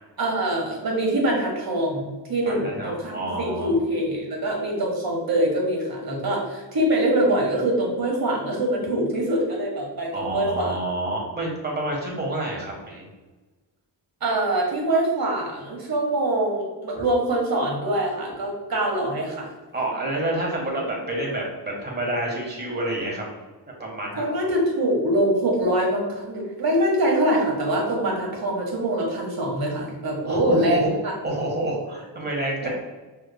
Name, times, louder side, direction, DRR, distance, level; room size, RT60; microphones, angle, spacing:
voice 1, 0.2-10.8 14.2-19.5 24.2-31.1 32.6-32.7, right 1 dB, 55° right, -1 dB, 1.3 m, -24 dB
voice 2, 2.4-3.8 10.1-13.1 19.7-23.2 23.8-24.3 30.2-30.9 31.2-32.7, right 1 dB, 20° right, -2 dB, 1.3 m, -28 dB
5.5 x 3.4 x 2.2 m, 1.2 s
wide cardioid pair, 125°, 44 cm